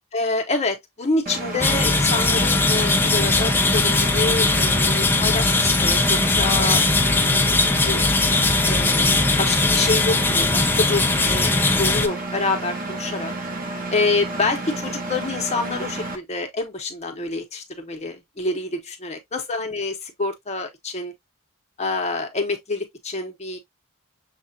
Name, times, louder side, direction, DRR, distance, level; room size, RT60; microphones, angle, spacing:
voice 1, 0.1-8.1 8.7-9.1 9.4-11.5 11.8-13.3 13.9-21.1 21.8-23.6, left 3 dB, 30° left, 0.8 m, -27 dB
Engine, 1.3-16.2, right 2 dB, 40° right, 0.9 m, -31 dB
sound 1, 1.6-12.1, left 3 dB, 10° left, 0.4 m, -19 dB
6.5 x 2.4 x 2.6 m
head